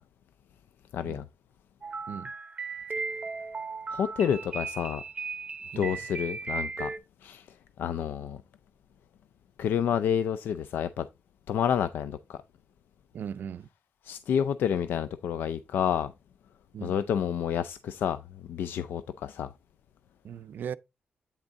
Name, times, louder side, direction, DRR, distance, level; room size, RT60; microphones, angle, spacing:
voice 1, 0.9-1.2 3.9-5.0 5.7-6.9 7.2-8.4 9.6-11.1 11.5-12.4 14.0-16.1 16.8-19.5, left 8 dB, 80° left, 0.4 m, -29 dB
sound 1, 1.8-7.0, right 4 dB, 35° right, 0.7 m, -36 dB
voice 2, 13.1-13.7 16.7-16.9 20.2-20.7, right 8 dB, 70° right, 0.4 m, -38 dB
8.8 x 3.5 x 3.9 m
cardioid pair, 80°, 3 cm